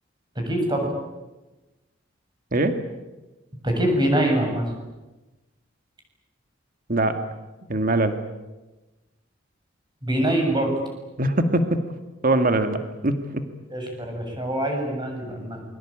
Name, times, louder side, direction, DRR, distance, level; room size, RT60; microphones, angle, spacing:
voice 1, 0.4-0.9 3.6-4.6 10.0-10.7 13.7-15.6, right 1 dB, 25° right, 2 dB, 7.6 m, -24 dB
voice 2, 7.7-8.2 11.2-11.8 12.2-12.8 13.0-13.4, right 2 dB, 45° right, 8 dB, 2.0 m, -21 dB
27.5 x 23.0 x 8.9 m, 1.1 s
head